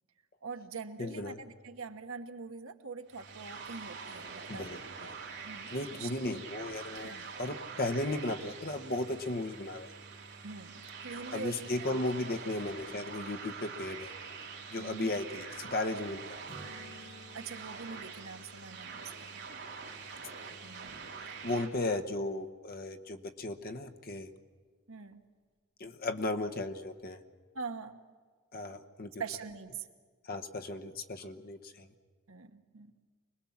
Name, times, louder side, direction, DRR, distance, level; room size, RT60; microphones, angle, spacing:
voice 1, 0.4-4.6 5.4-6.4 7.0-7.2 10.4-12.1 14.8-15.1 17.3-19.5 20.6-21.0 24.9-25.2 27.5-28.0 29.2-29.9 32.3-32.9, right 5 dB, 65° right, 7 dB, 1.2 m, -44 dB
voice 2, 1.0-1.4 4.5-5.1 5.7-7.1 7.4-9.9 11.3-14.1 14.7-16.2 21.4-24.3 25.8-27.2 28.5-29.1 30.2-31.9, left 2 dB, 45° left, 6 dB, 1.0 m, -35 dB
sound 1, 3.1-21.7, right 5 dB, 50° right, 3.4 m, -45 dB
Acoustic guitar / Strum, 16.5-20.2 25.1-25.2, equal, 25° right, 4.3 m, -54 dB
25.0 x 20.0 x 7.2 m, 1.5 s
head